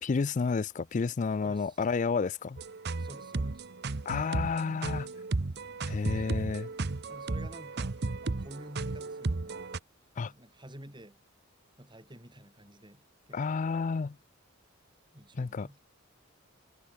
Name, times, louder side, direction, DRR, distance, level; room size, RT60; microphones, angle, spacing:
voice 1, 0.0-2.6 4.1-5.1 5.9-6.7 10.2-10.3 13.3-14.2 15.4-15.7, left 4 dB, 35° left, 0.4 m, -30 dB
voice 2, 1.4-1.9 3.0-3.7 4.7-4.9 6.2-6.5 7.1-8.0 8.2-9.7 10.2-11.2 11.8-13.6 15.1-15.8, right 1 dB, 20° right, 4.9 m, -50 dB
sound 1, 2.6-9.8, right 3 dB, 50° right, 0.8 m, -34 dB
head